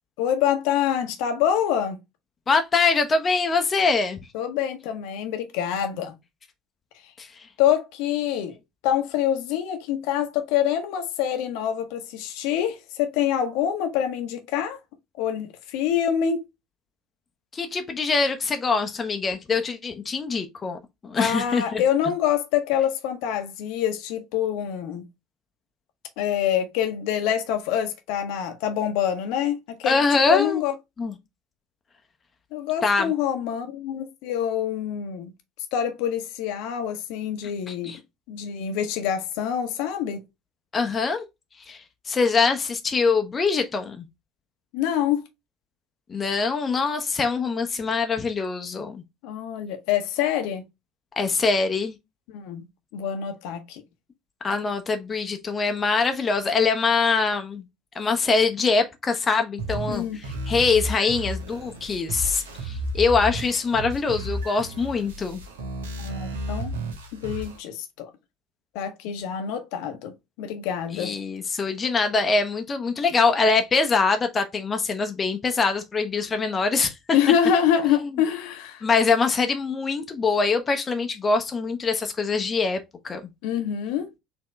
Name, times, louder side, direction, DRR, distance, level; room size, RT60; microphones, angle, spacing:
voice 1, 0.2-2.0 4.3-6.1 7.6-8.5 8.8-14.8 15.2-16.4 21.2-25.0 26.2-30.7 32.5-35.3 35.7-37.9 38.3-40.2 44.7-45.2 49.2-50.6 52.3-52.6 52.9-53.8 59.9-60.2 66.0-66.7 67.1-68.1 68.7-70.1 70.4-71.1 77.1-78.8 83.4-84.1, left 9 dB, 60° left, 0.8 m, -26 dB
voice 2, 2.5-4.2 7.2-7.5 17.5-21.8 29.8-30.6 31.0-31.1 32.8-33.1 37.7-38.0 40.7-41.2 41.7-44.0 46.1-49.0 51.1-51.9 54.4-57.6 57.9-60.0 60.5-65.4 70.9-76.9 77.9-78.1 78.8-82.8 83.0-83.2, left 4 dB, 30° left, 0.7 m, -23 dB
sound 1, 59.6-67.6, right 1 dB, 75° right, 0.9 m, -33 dB
4.3 x 2.8 x 3.2 m
figure-of-eight pair, 65°, 0 cm